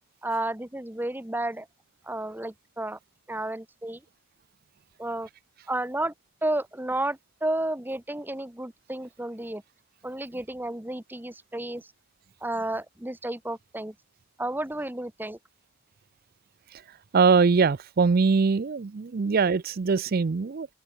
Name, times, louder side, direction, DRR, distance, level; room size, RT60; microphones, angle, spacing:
voice 1, 0.2-1.7 2.0-3.0 3.3-4.0 5.0-5.3 5.7-6.1 6.4-9.6 10.0-11.9 12.4-13.9 14.4-15.4, right 1 dB, 10° right, 1.0 m, -32 dB
voice 2, 17.1-20.7, right 5 dB, 45° right, 0.4 m, -22 dB
open air
head